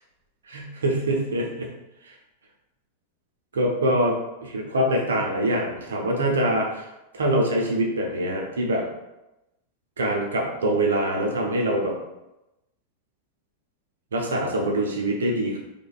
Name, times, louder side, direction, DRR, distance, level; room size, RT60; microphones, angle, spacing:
voice 1, 0.5-1.7 3.5-4.2 4.4-6.9 7.1-8.8 10.0-12.0 14.1-15.6, right 1 dB, 65° right, 0 dB, 0.7 m, -24 dB
4.9 x 2.3 x 2.3 m, 0.95 s
figure-of-eight pair, 90°, 0 cm